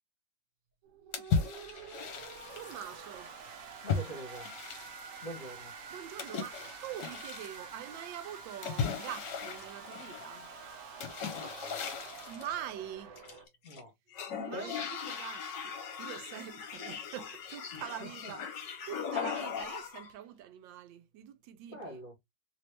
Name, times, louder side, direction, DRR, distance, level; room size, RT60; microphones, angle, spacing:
sound 1, 0.8-13.5, right 5 dB, 55° right, 1.0 m, -48 dB
sound 2, 1.1-2.9 3.9-5.2 6.2-7.6 8.6-10.3 11.0-12.5 13.2-13.8 14.1-20.1, left 6 dB, 70° left, 1.4 m, -37 dB
voice 1, 1.6-1.9 2.5-3.4 5.9-10.5 12.3-13.1 14.3-22.0, right 10 dB, 85° right, 1.3 m, -44 dB
voice 2, 3.8-4.5 5.2-5.7 11.4-11.8 13.6-13.9 14.5-14.7 17.7-18.1 21.7-22.1, equal, 50° left, 1.5 m, -44 dB
3.2 x 3.0 x 3.1 m
omnidirectional pair, 2.0 m